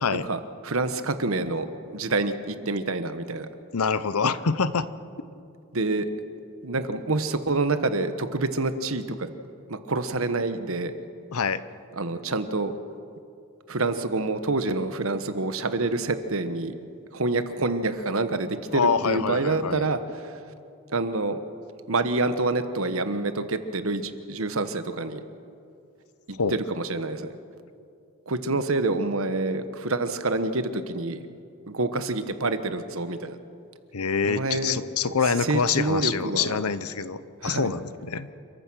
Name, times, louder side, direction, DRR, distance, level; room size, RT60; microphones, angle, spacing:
voice 1, 0.1-3.5 5.7-6.1 6.6-9.3 9.7-10.9 12.0-12.7 13.7-16.7 17.1-20.4 20.9-21.4 21.9-25.2 26.3-27.3 28.3-31.3 31.7-33.4 34.2-34.8 35.4-36.6 37.4-37.7, right 3 dB, 70° right, 10 dB, 1.2 m, -27 dB
voice 2, 3.7-4.9 11.3-11.6 18.7-19.9 26.4-26.5 33.9-38.3, left 5 dB, 85° left, 14 dB, 0.8 m, -26 dB
28.5 x 15.0 x 6.3 m, 2.5 s
head